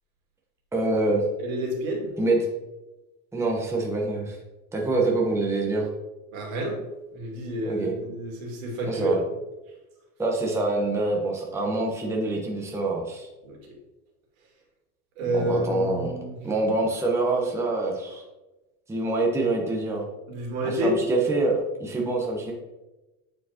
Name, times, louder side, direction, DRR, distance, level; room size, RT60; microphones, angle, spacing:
voice 1, 0.7-1.2 2.2-2.4 3.3-4.4 4.7-5.9 7.6-7.9 8.8-9.2 10.2-13.3 15.3-16.1 16.4-18.2 18.9-20.1 20.6-22.5, right 2 dB, 5° right, -1 dB, 0.9 m, -25 dB
voice 2, 1.4-2.1 6.3-6.8 7.1-9.1 13.4-13.6 15.2-16.4 20.3-21.0, right 1 dB, 80° right, 0 dB, 2.2 m, -29 dB
9.1 x 4.7 x 2.8 m, 1.1 s
supercardioid pair, 135°, 40 cm